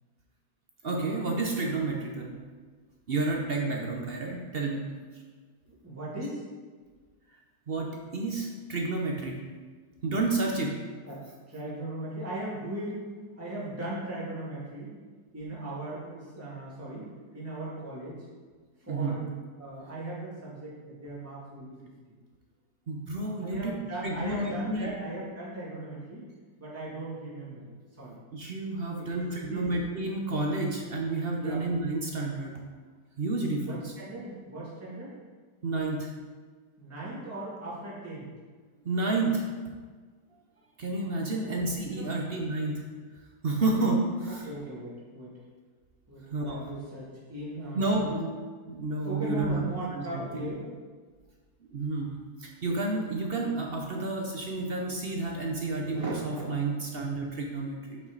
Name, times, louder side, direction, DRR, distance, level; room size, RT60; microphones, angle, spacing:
voice 1, 0.8-2.4 3.1-4.9 7.7-9.4 10.0-10.7 18.9-19.2 22.9-23.8 24.0-24.9 28.3-32.6 33.2-33.9 35.6-36.1 38.8-39.5 40.8-42.8 43.4-44.5 46.3-46.7 47.7-48.1 48.7-49.6 49.9-50.5 51.6-58.0, right 2 dB, 50° right, 0 dB, 0.7 m, -30 dB
voice 2, 5.7-6.4 11.0-11.2 11.5-13.1 13.4-14.9 15.3-18.2 18.8-19.2 19.6-21.7 23.2-26.3 26.6-28.2 29.1-29.7 31.4-31.6 33.6-35.1 36.8-38.3 41.3-41.6 41.9-42.1 44.4-45.4 46.1-48.3 49.0-50.7 56.1-56.2 56.7-56.8, right 1 dB, 10° right, -9 dB, 2.1 m, -38 dB
7.2 x 5.9 x 3.9 m, 1.5 s
omnidirectional pair, 1.8 m